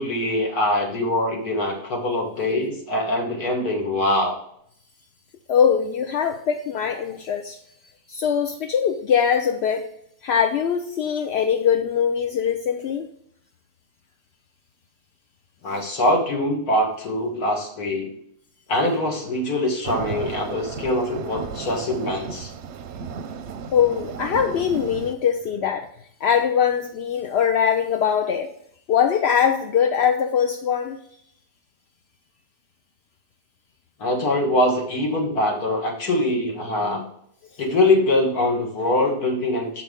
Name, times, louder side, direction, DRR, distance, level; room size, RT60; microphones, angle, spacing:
voice 1, 0.0-4.4 15.6-18.1 18.7-22.5 34.0-37.0 37.6-39.8, left 1 dB, 80° left, 1 dB, 2.2 m, -23 dB
voice 2, 5.5-7.6 8.1-9.9 10.2-13.1 23.7-25.9 26.2-28.5 28.9-31.0, left 8 dB, 65° left, 5 dB, 0.7 m, -22 dB
sound 1, 19.8-25.1, right 6 dB, 60° right, 0.8 m, -34 dB
7.2 x 6.0 x 3.5 m, 0.68 s
omnidirectional pair, 1.6 m